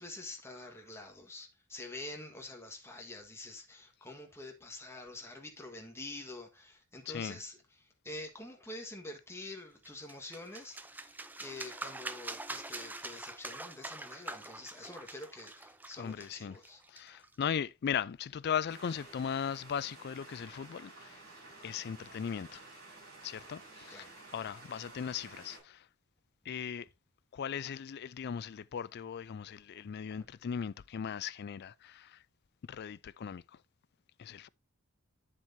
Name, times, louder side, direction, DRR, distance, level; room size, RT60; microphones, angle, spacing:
voice 1, 0.0-7.6 8.0-10.8 11.4-16.8 23.9-24.1, left 2 dB, 10° left, 1.5 m, -46 dB
voice 2, 7.1-7.4 15.9-16.6 16.9-21.2 21.6-22.7 23.2-25.9 26.5-26.9 27.3-32.2 32.6-33.6 34.2-34.5, left 7 dB, 50° left, 0.3 m, -38 dB
sound 1, 9.8-17.4, right 2 dB, 10° right, 0.5 m, -44 dB
sound 2, 18.7-25.6, right 2 dB, 50° right, 5.7 m, -52 dB
8.9 x 7.6 x 2.7 m
head